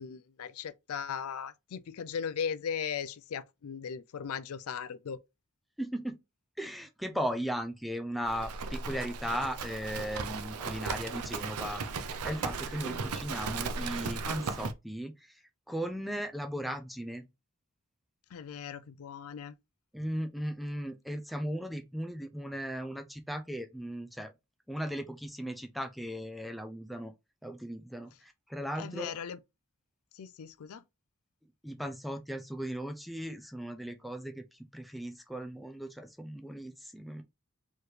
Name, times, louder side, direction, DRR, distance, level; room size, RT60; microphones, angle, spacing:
voice 1, 0.0-5.2 18.3-19.5 28.8-29.4 30.1-30.8, left 7 dB, 75° left, 0.4 m, -38 dB
voice 2, 5.8-6.2 6.6-15.1 15.7-17.3 19.9-24.3 24.7-27.1 27.4-29.1 31.6-37.2, equal, ahead, 0.4 m, -37 dB
Livestock farm animals working animals, 8.3-14.7, right 4 dB, 90° right, 0.6 m, -36 dB
4.7 x 3.1 x 3.2 m
head